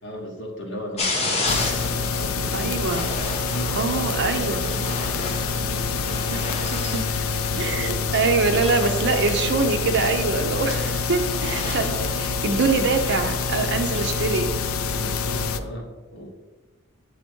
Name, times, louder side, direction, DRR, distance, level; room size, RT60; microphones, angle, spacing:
voice 1, 0.0-2.9 3.5-6.6 7.1-8.1 14.8-16.3, equal, 55° left, 0 dB, 1.3 m, -36 dB
sound 1, 1.0-12.2, left 2 dB, 30° left, 0.9 m, -33 dB
sound 2, 1.5-15.6, left 5 dB, 80° left, 0.4 m, -26 dB
voice 2, 2.5-3.1 3.8-4.6 6.3-6.4 6.7-7.0 7.6-14.5, right 4 dB, 55° right, 6 dB, 0.6 m, -24 dB
7.5 x 3.6 x 4.5 m, 1.2 s
head